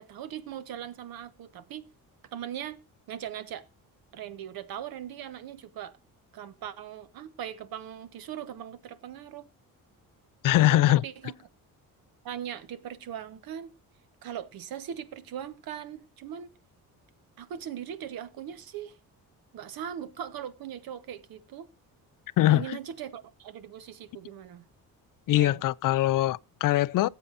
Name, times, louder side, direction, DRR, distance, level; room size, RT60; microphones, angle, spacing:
voice 1, 0.0-1.9 2.3-2.8 3.1-3.7 4.1-5.9 6.3-9.5 10.6-11.3 12.2-13.7 14.2-16.5 17.4-19.0 19.5-21.7 22.5-24.6 25.3-25.6, right 9 dB, 75° right, 1.3 m, -39 dB
voice 2, 10.4-11.0 22.4-22.8 25.3-27.1, left 15 dB, 60° left, 0.5 m, -22 dB
19.0 x 8.2 x 2.6 m
cardioid pair, 150°, 36 cm